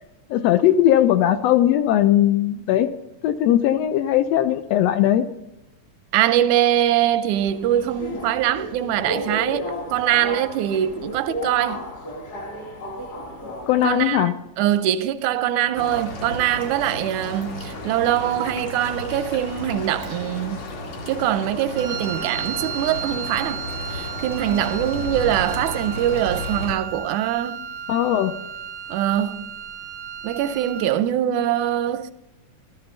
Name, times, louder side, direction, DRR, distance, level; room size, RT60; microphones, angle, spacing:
voice 1, 0.3-2.9 3.2-5.3 13.7-14.3 27.9-28.4, left 12 dB, 80° left, 1.5 m, -19 dB
voice 2, 6.1-9.7 9.9-11.8 13.8-14.3 14.6-20.6 21.1-23.6 23.9-27.6 28.9-29.4 30.2-32.1, right 11 dB, 85° right, 2.0 m, -23 dB
Subway metro underground, 7.3-14.1, equal, 45° left, 1.4 m, -33 dB
sound 1, 15.7-26.8, left 1 dB, 60° left, 3.2 m, -33 dB
Wind instrument woodwind instrument, 21.7-31.0, right 8 dB, 65° right, 1.1 m, -34 dB
14.0 x 13.0 x 4.0 m
omnidirectional pair, 3.4 m